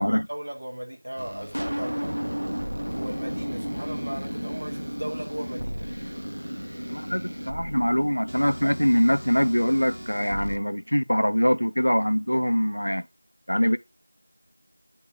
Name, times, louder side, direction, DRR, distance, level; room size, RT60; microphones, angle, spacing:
voice 1, 0.0-2.1 2.8-5.9, right 1 dB, 15° right, 0.6 m, -37 dB
sound 1, 1.2-10.6, equal, 75° right, 0.8 m, -33 dB
voice 2, 6.9-13.1 13.5-13.8, equal, 55° left, 0.5 m, -23 dB
8.6 x 3.9 x 3.6 m
figure-of-eight pair, 180°, 0 cm